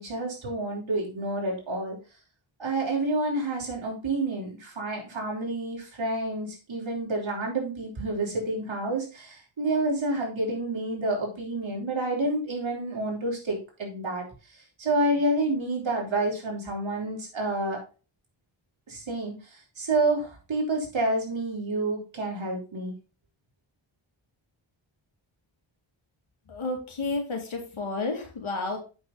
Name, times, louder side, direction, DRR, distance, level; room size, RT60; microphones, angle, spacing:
voice 1, 0.0-2.0 2.6-14.2 14.8-17.8 18.9-22.9, right 2 dB, 70° right, -2 dB, 4.1 m, -29 dB
voice 2, 26.5-28.8, left 3 dB, 80° left, 3 dB, 2.6 m, -31 dB
8.0 x 6.3 x 4.0 m, 0.33 s
wide cardioid pair, 85°, 48 cm